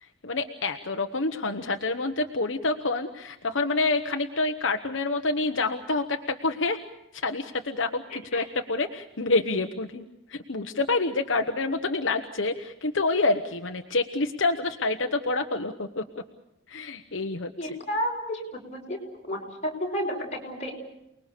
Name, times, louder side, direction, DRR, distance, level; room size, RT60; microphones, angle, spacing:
voice 1, 0.0-6.8 7.1-16.0 16.7-17.8, left 3 dB, 65° left, 5 dB, 1.1 m, -27 dB
voice 2, 17.6-19.0 19.2-20.7, equal, 35° left, 0 dB, 5.4 m, -31 dB
29.5 x 20.5 x 6.7 m, 0.88 s
head